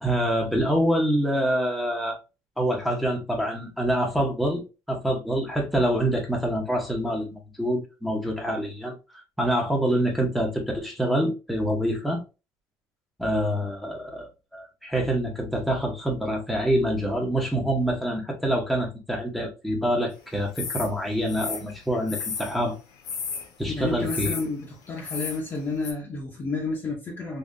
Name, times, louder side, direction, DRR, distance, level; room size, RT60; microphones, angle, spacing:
voice 1, 0.0-2.2 2.6-4.6 4.9-12.2 13.2-22.7 23.6-24.3, equal, ahead, 0.9 m, -26 dB
sound 1, 20.5-20.9 21.3-22.6 23.0-23.5 24.1-24.5 25.0-25.4 25.8-25.9, left 5 dB, 70° left, 1.2 m, -33 dB
voice 2, 23.7-27.4, left 3 dB, 30° left, 0.8 m, -30 dB
3.6 x 2.8 x 2.6 m
cardioid pair, 145°, 7 cm